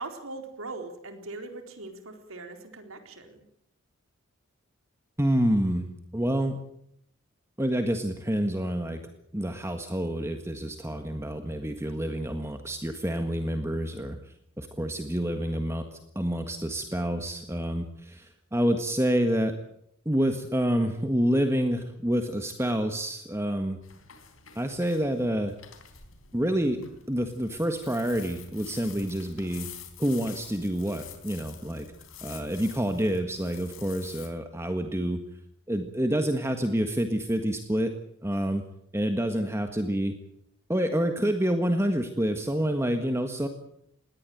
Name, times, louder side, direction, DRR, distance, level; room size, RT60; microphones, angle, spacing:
voice 1, 0.0-3.4, right 3 dB, 85° right, 5 dB, 4.0 m, -40 dB
voice 2, 5.2-5.9 6.1-6.6 7.6-9.0 9.3-14.2 14.6-15.8 16.1-19.6 20.0-23.8 24.5-25.5 26.3-26.8 27.1-29.7 30.0-31.8 32.2-35.2 35.7-37.9 38.2-38.6 38.9-40.1 40.7-43.5, equal, 15° right, 6 dB, 1.6 m, -28 dB
sound 1, 23.8-34.3, left 8 dB, 80° left, 4.0 m, -48 dB
20.5 x 18.0 x 9.1 m, 0.72 s
head